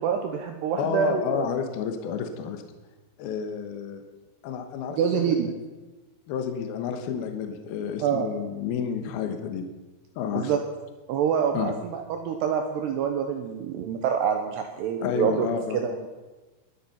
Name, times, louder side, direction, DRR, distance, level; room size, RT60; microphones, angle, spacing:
voice 1, 0.0-1.5 5.0-5.5 8.0-8.3 10.4-10.6 11.1-15.5 15.7-16.1, right 7 dB, 75° right, 5 dB, 2.6 m, -26 dB
voice 2, 0.8-2.6 3.2-4.0 4.4-5.6 6.3-9.7 10.2-10.5 11.5-11.7 15.0-15.8, left 7 dB, 70° left, 6 dB, 2.4 m, -30 dB
22.0 x 8.5 x 5.8 m, 1.2 s
omnidirectional pair, 5.8 m